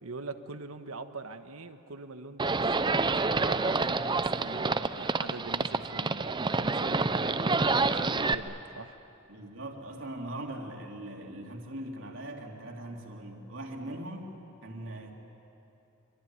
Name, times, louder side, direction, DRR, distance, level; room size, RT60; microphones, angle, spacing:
voice 1, 0.0-9.0 13.8-14.0, right 3 dB, 90° right, 8 dB, 1.3 m, -43 dB
Livestock farm animals working animals, 2.4-8.3, right 3 dB, 20° right, 0.6 m, -28 dB
voice 2, 9.3-15.1, right 1 dB, 65° right, 1 dB, 3.1 m, -41 dB
24.5 x 24.5 x 9.7 m, 2.9 s
head